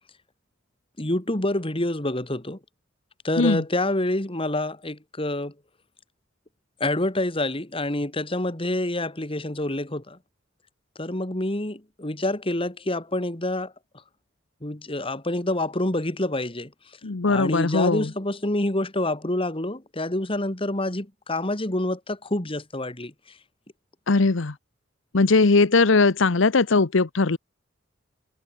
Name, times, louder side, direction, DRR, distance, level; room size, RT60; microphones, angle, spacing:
voice 1, 1.0-2.6 3.2-5.5 6.8-10.2 11.0-13.7 14.6-16.7 17.3-23.1, left 1 dB, 30° left, 2.5 m, -27 dB
voice 2, 17.0-18.1 24.1-24.5 25.1-27.4, left 3 dB, 75° left, 0.9 m, -19 dB
head